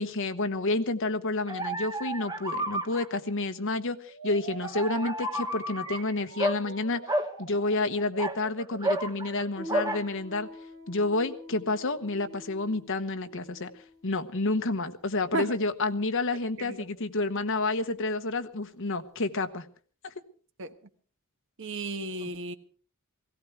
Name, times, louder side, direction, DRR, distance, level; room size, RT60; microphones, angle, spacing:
voice 1, 0.0-7.0 7.4-10.5 10.9-13.7 14.0-19.7 20.0-20.1 22.2-22.3, left 2 dB, 60° left, 1.2 m, -29 dB
sound 1, 1.5-3.1 4.6-6.0 6.4-6.6 7.1-7.3 8.0-9.4 9.7-10.0, right 1 dB, 20° right, 1.2 m, -31 dB
sound 2, 4.0-10.8, right 5 dB, 80° right, 1.9 m, -46 dB
Piano, 9.5-19.5, left 2 dB, 15° left, 4.1 m, -48 dB
voice 2, 21.6-22.5, right 2 dB, 60° right, 1.3 m, -33 dB
17.5 x 16.5 x 4.7 m
head